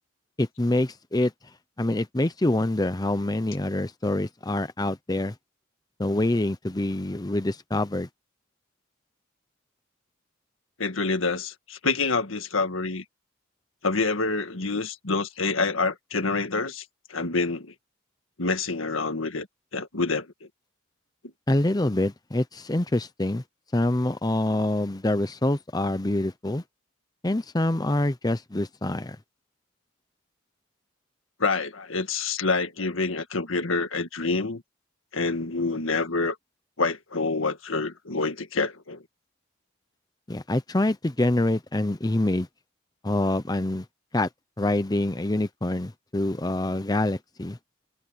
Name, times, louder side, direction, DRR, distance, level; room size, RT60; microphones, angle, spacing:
voice 1, 0.4-1.3 1.8-5.3 6.0-8.1 21.5-23.4 23.7-26.6 27.2-29.2 40.3-42.5 43.0-43.8 44.1-44.3 44.6-47.6, left 1 dB, 20° left, 0.7 m, -25 dB
voice 2, 10.8-13.0 13.8-16.8 17.1-17.7 18.4-19.5 19.7-20.3 31.4-34.6 35.1-36.4 36.8-39.0, left 3 dB, 85° left, 1.8 m, -27 dB
head